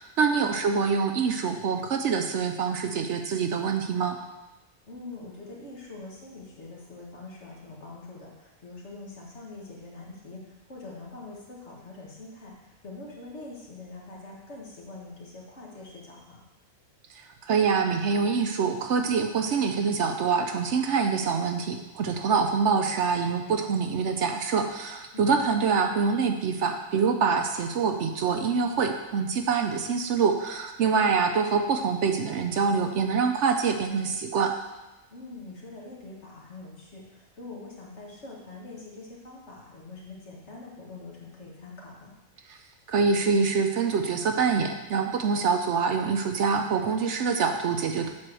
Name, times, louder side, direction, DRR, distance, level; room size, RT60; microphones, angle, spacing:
voice 1, 0.0-4.2 17.5-34.5 42.5-42.6 42.9-48.1, right 5 dB, 65° right, 5 dB, 0.9 m, -25 dB
voice 2, 4.9-16.4 25.1-25.4 30.9-31.2 35.1-42.1, left 3 dB, 55° left, -3 dB, 1.9 m, -44 dB
7.5 x 4.4 x 6.2 m, 1.0 s
omnidirectional pair, 1.4 m